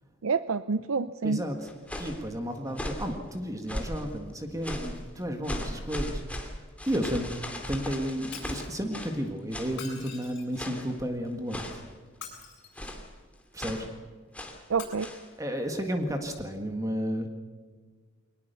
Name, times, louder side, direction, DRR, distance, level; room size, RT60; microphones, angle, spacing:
voice 1, 0.2-1.4 14.7-15.1, right 5 dB, 90° right, 13 dB, 0.6 m, -27 dB
voice 2, 1.2-1.7 2.0-6.5 6.9-7.3 7.7-11.7 13.5-13.9 15.4-17.3, equal, 15° right, 5 dB, 1.8 m, -32 dB
sound 1, 1.6-2.2 2.7-3.1 3.7-4.1 4.6-5.0 5.4-9.2 9.5-9.8 10.5-10.9 11.5-11.9 12.7-13.1 13.6-13.9 14.3-14.6 15.0-15.2, left 1 dB, 5° left, 2.7 m, -37 dB
Shatter, 8.3-8.7 9.7-10.7 12.1-13.0 14.7-14.8, left 7 dB, 60° left, 7.6 m, -44 dB
22.5 x 19.5 x 6.9 m, 1.5 s
head